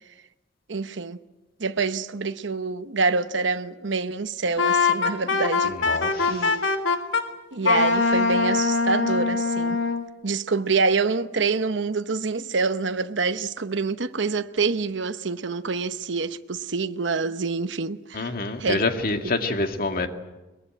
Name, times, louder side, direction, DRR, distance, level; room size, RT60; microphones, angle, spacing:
voice 1, 0.7-1.2 1.6-5.7 6.2-6.7 7.5-9.8 10.2-18.3 18.6-18.9, right 4 dB, 70° right, 0.9 m, -26 dB
Wind instrument woodwind instrument, 4.6-7.2 7.6-10.0, left 4 dB, 80° left, 1.9 m, -22 dB
voice 2, 5.9-6.5 18.1-20.1, left 2 dB, 50° left, 2.1 m, -26 dB
22.5 x 21.5 x 9.0 m
head